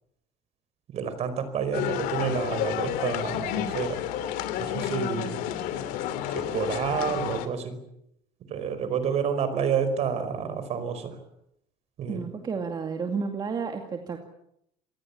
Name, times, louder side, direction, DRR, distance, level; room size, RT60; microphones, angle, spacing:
voice 1, 0.9-4.0 4.6-5.4 6.3-7.8 8.5-11.2 12.0-12.3, right 6 dB, 50° right, 12 dB, 4.9 m, -29 dB
sound 1, 1.7-7.5, left 10 dB, 85° left, 2.8 m, -30 dB
voice 2, 12.1-14.2, right 5 dB, 30° right, 4 dB, 2.4 m, -31 dB
27.5 x 19.5 x 8.6 m, 0.77 s
cardioid pair, 145°, 14 cm